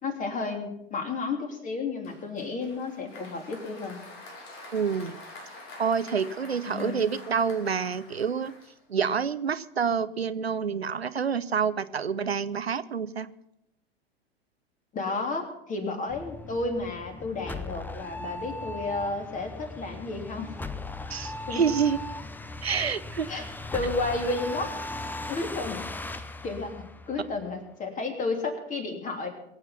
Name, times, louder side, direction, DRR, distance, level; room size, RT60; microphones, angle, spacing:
voice 1, 0.0-4.0 6.7-7.0 14.9-20.6 21.5-21.6 23.3-23.4 23.7-24.7 25.3-29.3, left 3 dB, 25° left, 4 dB, 3.1 m, -32 dB
Applause, 2.0-9.2, left 2 dB, 45° left, 3.1 m, -47 dB
voice 2, 4.7-5.2 5.8-8.5 8.9-13.3 21.1-22.0 22.6-23.3, right 6 dB, 85° right, 15 dB, 0.6 m, -28 dB
sound 1, 16.1-27.6, left 2 dB, 5° left, 0.7 m, -38 dB
22.0 x 8.2 x 5.8 m, 0.80 s
figure-of-eight pair, 90°, 31 cm